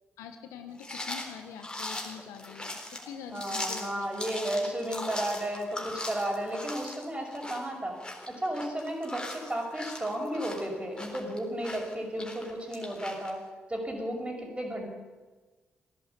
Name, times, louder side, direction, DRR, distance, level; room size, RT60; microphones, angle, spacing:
voice 1, 0.2-4.1, left 8 dB, 80° left, 7 dB, 1.2 m, -45 dB
sound 1, 0.8-13.3, left 1 dB, 15° left, 3.9 m, -40 dB
voice 2, 3.3-8.0 8.3-13.4 13.7-14.9, right 1 dB, 20° right, 2 dB, 5.9 m, -33 dB
15.0 x 11.0 x 8.5 m, 1.3 s
hypercardioid pair, 40°, 5 cm